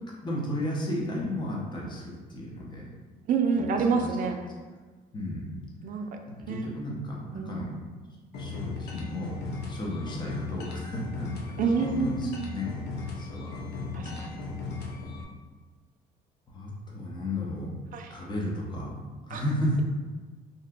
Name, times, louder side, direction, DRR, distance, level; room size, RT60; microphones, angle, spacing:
voice 1, 0.2-2.9 3.5-4.1 5.1-5.5 6.5-7.8 8.4-12.7 12.9-13.5 14.0-14.4 16.5-17.7 18.1-18.9 19.2-19.8, left 1 dB, 25° left, -3 dB, 0.8 m, -34 dB
voice 2, 3.3-4.4 5.8-6.0 6.5-6.8 7.3-7.7 11.6-12.6 13.9-14.4 17.9-18.1 19.3-19.4, right 5 dB, 55° right, 4 dB, 0.4 m, -28 dB
sound 1, 8.3-15.2, left 3 dB, 75° left, 0.6 m, -37 dB
2.7 x 2.3 x 3.6 m, 1.4 s
cardioid pair, 110°, 17 cm